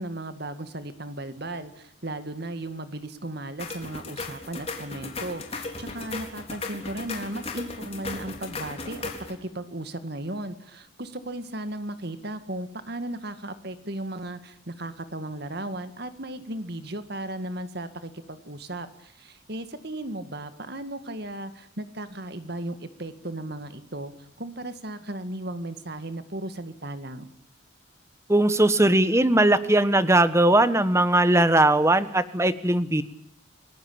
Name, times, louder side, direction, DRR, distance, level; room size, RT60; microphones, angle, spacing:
voice 1, 0.0-27.3, right 1 dB, 55° right, 11 dB, 2.1 m, -36 dB
sound 1, 3.6-9.3, left 3 dB, 30° left, 4.0 m, -36 dB
voice 2, 28.3-33.0, right 1 dB, 15° right, 13 dB, 1.3 m, -19 dB
29.5 x 20.0 x 8.8 m, 0.69 s
head